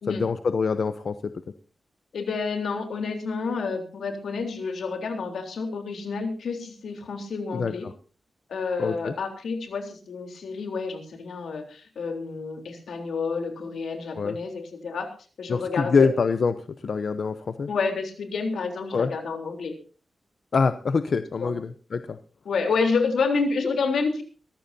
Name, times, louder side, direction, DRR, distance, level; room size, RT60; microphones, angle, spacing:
voice 1, 0.1-1.2 7.5-7.9 8.8-9.1 14.1-14.4 15.5-17.7 18.9-19.1 20.5-22.2, left 5 dB, 50° left, 11 dB, 0.7 m, -25 dB
voice 2, 2.1-7.9 8.5-15.1 15.4-16.1 17.7-19.8 21.4-21.5 22.5-24.2, left 4 dB, 80° left, 5 dB, 3.6 m, -29 dB
23.0 x 14.5 x 2.8 m, 0.38 s
wide cardioid pair, 165°, 0 cm